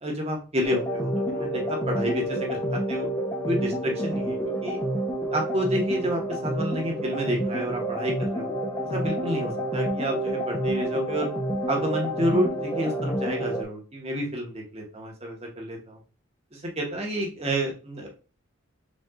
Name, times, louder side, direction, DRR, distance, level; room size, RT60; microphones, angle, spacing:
voice 1, 0.0-3.1 3.4-4.8 5.3-8.5 8.9-11.3 11.7-16.0 16.5-18.1, equal, 30° right, 0 dB, 1.2 m, -29 dB
sound 1, 0.6-13.6, right 1 dB, 15° left, 0.8 m, -29 dB
5.2 x 2.6 x 3.6 m, 0.34 s
head